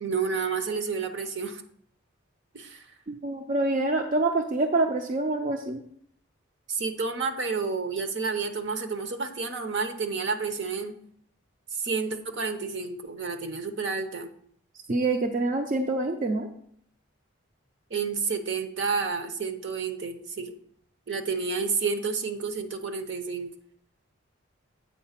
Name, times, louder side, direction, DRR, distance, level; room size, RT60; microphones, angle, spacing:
voice 1, 0.0-1.6 2.5-2.8 6.7-10.9 11.7-14.3 17.9-20.5 21.1-23.5, right 5 dB, 60° right, 7 dB, 0.8 m, -30 dB
voice 2, 3.1-5.8 14.9-16.5, right 2 dB, 40° right, 4 dB, 0.4 m, -26 dB
8.4 x 4.3 x 5.7 m, 0.65 s
head